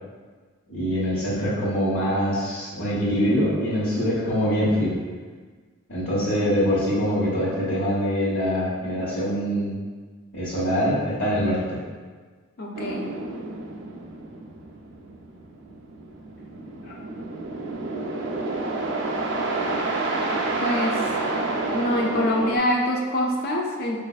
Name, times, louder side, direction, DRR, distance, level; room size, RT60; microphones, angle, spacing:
voice 1, 0.7-5.0 5.9-9.7 10.3-11.8, equal, 65° left, -14 dB, 1.1 m, -24 dB
voice 2, 12.6-13.1 16.9-17.0 20.6-21.0 21.7-24.0, left 1 dB, 45° left, -1 dB, 0.5 m, -25 dB
sound 1, 12.7-22.6, right 2 dB, 55° right, 0.4 m, -29 dB
4.9 x 2.5 x 2.3 m, 1.5 s
head